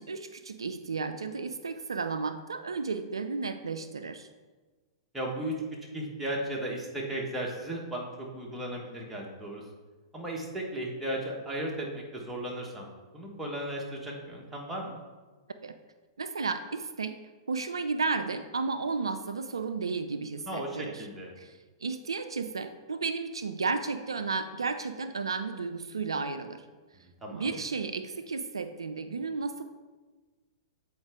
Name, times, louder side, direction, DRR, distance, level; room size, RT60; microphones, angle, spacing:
voice 1, 0.0-4.3 15.6-15.7 16.2-17.1 17.5-21.1 21.4-26.6 27.3-29.6, right 4 dB, 80° right, 9 dB, 0.3 m, -33 dB
voice 2, 5.1-5.5 5.9-9.6 10.1-12.9 13.1-15.0 20.5-21.3 27.2-27.6, right 1 dB, 5° right, -3 dB, 1.3 m, -35 dB
7.8 x 4.4 x 3.6 m, 1.3 s
figure-of-eight pair, 105°, 3 cm